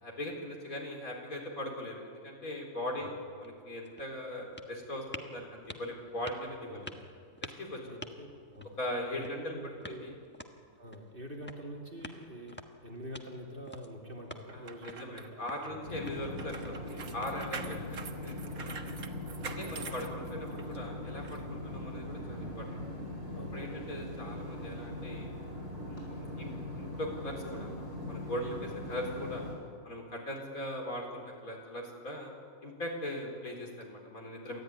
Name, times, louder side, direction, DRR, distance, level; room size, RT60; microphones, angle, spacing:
voice 1, 0.0-3.1 3.4-6.9 7.4-7.8 8.8-10.1 14.5-17.8 18.2-18.8 19.4-22.8 23.5-25.3 25.9-29.4 29.8-32.3 32.6-34.6, left 1 dB, 75° left, 0 dB, 4.6 m, -40 dB
sound 1, 3.4-17.8, equal, 10° left, 1.3 m, -51 dB
voice 2, 6.7-7.1 7.8-8.3 8.5-8.7 9.1-10.1 10.8-16.0 17.6-17.8 19.4-19.7 21.6-21.8 23.3-23.6, equal, 40° right, 0 dB, 2.8 m, -46 dB
sound 2, 14.5-20.8 21.2-21.4, right 5 dB, 85° right, 1.7 m, -45 dB
sound 3, 15.8-29.5, left 1 dB, 60° right, 7.2 m, -41 dB
28.0 x 13.5 x 9.6 m, 2.2 s
omnidirectional pair, 1.5 m